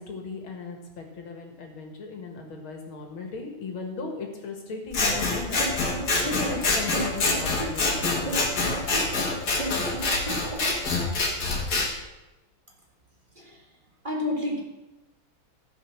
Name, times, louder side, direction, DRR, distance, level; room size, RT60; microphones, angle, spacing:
voice 1, 0.0-5.7 6.2-8.9, left 4 dB, 80° left, 3 dB, 2.6 m, -36 dB
Scissors, 4.9-11.9, left 3 dB, 50° left, 2.3 m, -26 dB
sound 1, 5.6-10.9, right 1 dB, 10° left, 3.3 m, -34 dB
voice 2, 13.3-14.6, left 2 dB, 25° right, -2 dB, 1.9 m, -31 dB
15.0 x 5.6 x 6.4 m, 1.0 s
omnidirectional pair, 2.2 m